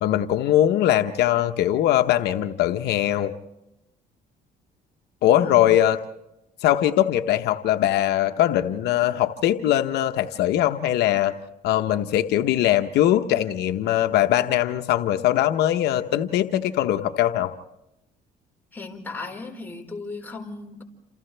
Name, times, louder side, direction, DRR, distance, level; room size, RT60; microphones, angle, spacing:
voice 1, 0.0-3.3 5.2-6.0 6.6-11.3 11.6-17.5, left 12 dB, 80° left, 7 dB, 0.9 m, -21 dB
voice 2, 5.4-5.7 18.7-20.8, left 3 dB, 10° left, 0 dB, 4.6 m, -36 dB
28.5 x 28.0 x 3.4 m, 0.90 s
cardioid pair, 110°, 17 cm